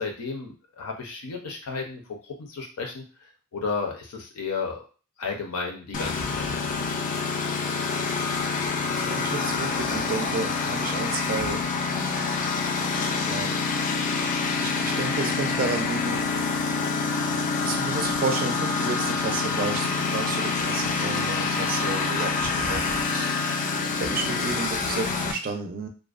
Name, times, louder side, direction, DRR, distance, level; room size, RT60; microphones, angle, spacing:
voice 1, 0.0-3.0 3.5-4.8 5.2-6.6, left 4 dB, 80° left, 2 dB, 0.6 m, -33 dB
Engine, 5.9-25.3, left 4 dB, 35° left, 0.3 m, -26 dB
voice 2, 8.9-11.6 13.2-13.8 14.6-16.7 17.6-23.3 24.0-25.9, right 4 dB, 40° right, 5 dB, 0.4 m, -32 dB
2.5 x 2.1 x 2.4 m, 0.37 s
head